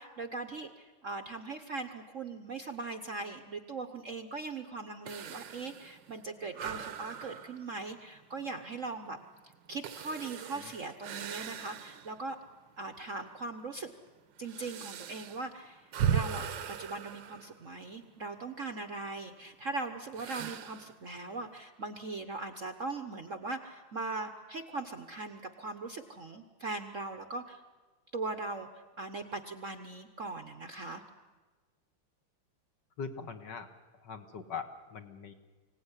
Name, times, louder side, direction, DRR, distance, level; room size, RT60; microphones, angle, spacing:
voice 1, 0.0-9.2 9.7-12.4 12.8-13.9 14.4-16.4 16.8-27.6 28.1-31.0, right 3 dB, 45° right, 7 dB, 1.1 m, -40 dB
sound 1, 5.1-12.2 12.7-12.8 13.5-18.1 20.1-21.0, right 8 dB, 65° right, 1.5 m, -38 dB
voice 2, 33.0-33.7 34.0-35.3, left 5 dB, 55° left, 6 dB, 1.9 m, -41 dB
25.0 x 17.5 x 9.8 m, 1.3 s
omnidirectional pair, 2.4 m